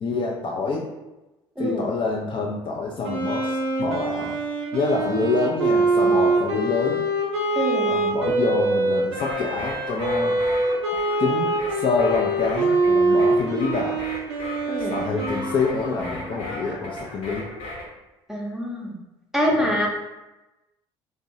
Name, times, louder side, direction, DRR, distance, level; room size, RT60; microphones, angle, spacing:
voice 1, 0.0-0.9 1.6-4.4 4.7-7.0 7.9-10.4 11.2-14.0 14.9-17.5 19.5-19.7, left 4 dB, 35° left, -1 dB, 0.4 m, -26 dB
Wind instrument woodwind instrument, 3.0-16.4, right 2 dB, 85° right, 0.4 m, -24 dB
voice 2, 7.6-7.9 14.7-14.9 18.3-18.9 19.3-19.9, equal, 5° right, -3 dB, 0.7 m, -24 dB
sound 1, 9.1-17.9, left 1 dB, 65° left, 1.0 m, -36 dB
2.5 x 2.0 x 2.6 m, 1.0 s
hypercardioid pair, 60°, 14 cm